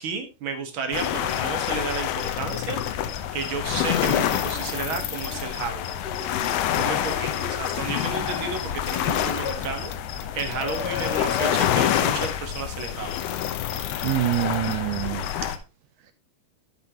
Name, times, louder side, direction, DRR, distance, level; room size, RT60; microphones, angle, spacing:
voice 1, 0.0-2.8 3.3-6.0 6.7-13.2, right 5 dB, 60° right, 1.3 m, -32 dB
sound 1, 0.9-15.6, left 10 dB, 80° left, 2.9 m, -27 dB
sound 2, 4.4-5.4 6.0-6.5 7.0-8.8 9.4-9.6 10.5-11.6 14.3-14.5 14.8-14.9, left 5 dB, 30° left, 2.6 m, -36 dB
voice 2, 13.6-15.3, right 14 dB, 85° right, 1.9 m, -26 dB
11.5 x 8.0 x 2.9 m
omnidirectional pair, 4.5 m